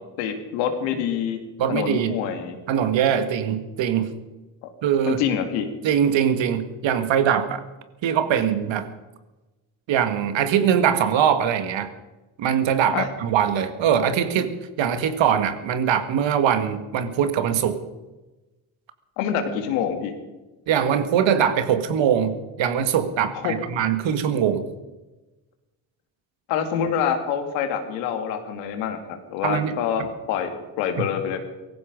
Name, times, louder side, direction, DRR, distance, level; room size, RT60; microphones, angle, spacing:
voice 1, 0.2-1.4 1.7-2.6 4.6-4.7 5.1-5.7 12.9-13.1 19.2-20.1 23.3-23.5 26.5-31.4, left 8 dB, 90° left, 6 dB, 2.5 m, -26 dB
voice 2, 1.6-2.2 2.7-4.1 4.8-5.2 5.8-7.6 8.0-8.9 9.9-11.9 12.4-17.8 20.7-24.6 29.4-30.1 31.0-31.1, right 8 dB, 65° right, 10 dB, 1.9 m, -22 dB
18.0 x 15.0 x 5.3 m, 1.1 s
supercardioid pair, 60°, 48 cm